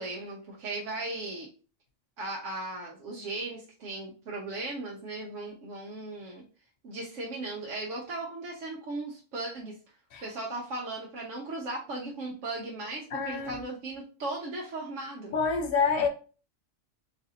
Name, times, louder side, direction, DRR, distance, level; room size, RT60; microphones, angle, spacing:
voice 1, 0.0-1.5 2.2-6.4 6.8-9.7 10.2-15.3, right 2 dB, 80° right, -3 dB, 1.1 m, -37 dB
voice 2, 13.1-13.6 15.3-16.1, left 5 dB, 55° left, 3 dB, 0.8 m, -27 dB
4.0 x 2.5 x 2.7 m, 0.37 s
omnidirectional pair, 1.2 m